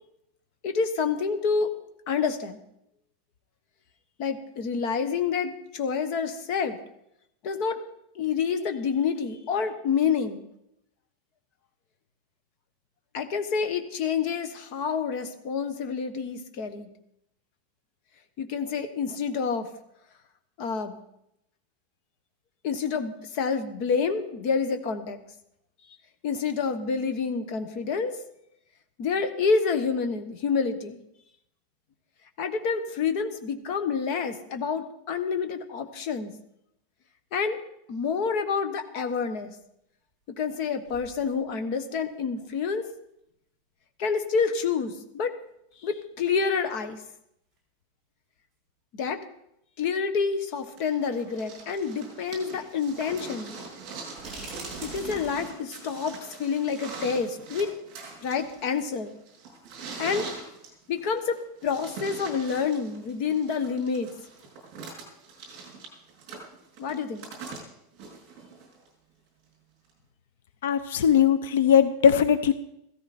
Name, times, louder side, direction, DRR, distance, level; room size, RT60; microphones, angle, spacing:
voice 1, 0.6-1.7 2.1-2.6 4.2-6.8 7.4-7.8 8.1-10.4 13.1-16.9 18.4-19.7 20.6-20.9 22.6-25.2 26.2-28.1 29.0-31.0 32.4-36.3 37.3-37.6 37.9-39.5 40.4-42.9 44.0-45.3 45.8-47.0 48.9-49.2 49.8-53.5 54.8-57.7 58.2-59.1 60.0-60.3 60.9-64.1 66.8-67.2, left 5 dB, 40° left, 8 dB, 1.2 m, -28 dB
sound 1, 39.6-39.7 40.5-40.6 40.8-41.8 42.5-42.6 44.3-44.4 45.7-45.8 46.0-46.1 47.1-47.2 47.5-47.6 49.0-49.1 50.6-50.7 51.6-51.9 52.3-52.6 52.9-53.0 54.2-55.3, right 2 dB, 10° right, 6.0 m, -44 dB
sound 2, 50.8-68.9 69.9-70.0, right 4 dB, 35° right, 5.4 m, -42 dB
voice 2, 70.6-72.5, left 8 dB, 80° left, 13 dB, 0.8 m, -20 dB
15.5 x 14.0 x 4.3 m, 0.79 s
supercardioid pair, 175°, 0 cm